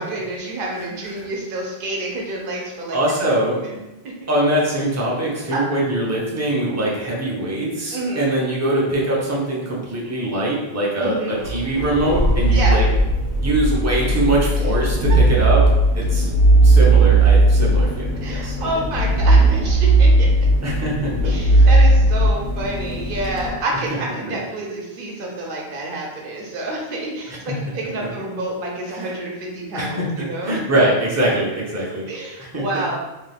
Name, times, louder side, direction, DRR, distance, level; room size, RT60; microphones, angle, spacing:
voice 1, 0.0-3.0 3.6-4.1 5.5-5.8 7.9-8.3 11.0-11.3 12.5-12.9 18.2-20.3 21.2-30.6 32.1-33.0, right 2 dB, 60° right, -1 dB, 0.8 m, -28 dB
voice 2, 2.9-3.6 4.3-12.8 13.4-15.6 15.9-16.2 16.6-18.7 20.6-21.7 24.3-24.4 27.5-27.6 28.9-29.1 29.7-32.1 32.4-32.8, right 1 dB, 20° right, -4 dB, 0.5 m, -22 dB
sound 1, 11.4-23.5, right 2 dB, 85° right, 0.9 m, -16 dB
2.7 x 2.3 x 3.3 m, 1.0 s
omnidirectional pair, 1.1 m